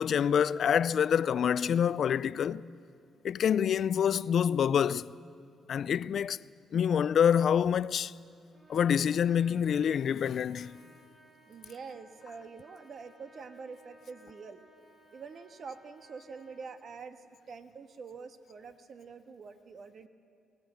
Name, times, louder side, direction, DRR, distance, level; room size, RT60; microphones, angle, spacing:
voice 1, 0.0-2.6 3.2-5.1 5.7-6.4 6.7-8.1 8.7-10.8, left 8 dB, 60° left, 0.4 m, -26 dB
Trumpet, 8.5-16.7, right 1 dB, 25° right, 4.1 m, -60 dB
voice 2, 11.4-14.6 15.1-20.1, right 5 dB, 55° right, 1.4 m, -46 dB
21.0 x 18.5 x 7.7 m
cardioid pair, 90°, 0 cm